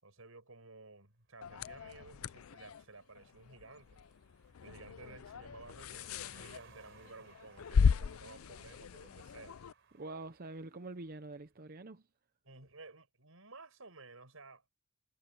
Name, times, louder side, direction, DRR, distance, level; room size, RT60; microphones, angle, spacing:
voice 1, 0.0-4.0 4.6-9.6 12.4-14.7, right 3 dB, 85° right, 5.6 m, -54 dB
sound 1, 1.2-11.5, right 5 dB, 65° right, 4.0 m, -65 dB
sound 2, 1.4-9.7, left 6 dB, 90° left, 0.5 m, -36 dB
voice 2, 9.9-12.0, right 2 dB, 45° right, 0.8 m, -45 dB
head